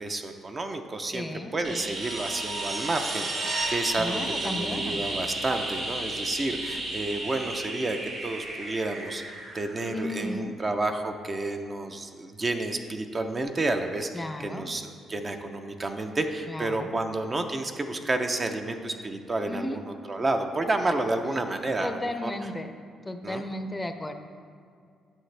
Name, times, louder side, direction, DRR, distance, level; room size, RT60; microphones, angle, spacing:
voice 1, 0.0-14.1 14.4-22.3 23.2-23.4, right 2 dB, 30° right, 5 dB, 0.6 m, -30 dB
voice 2, 1.1-1.9 4.0-5.1 9.9-10.5 14.1-14.7 16.5-17.0 19.4-19.8 21.5-22.7 23.0-24.1, left 1 dB, 15° left, 7 dB, 0.6 m, -34 dB
sound 1, 1.6-10.3 12.7-12.8, right 2 dB, 60° right, 2.1 m, -33 dB
9.0 x 6.9 x 3.3 m, 2.2 s
cardioid pair, 90°, 0 cm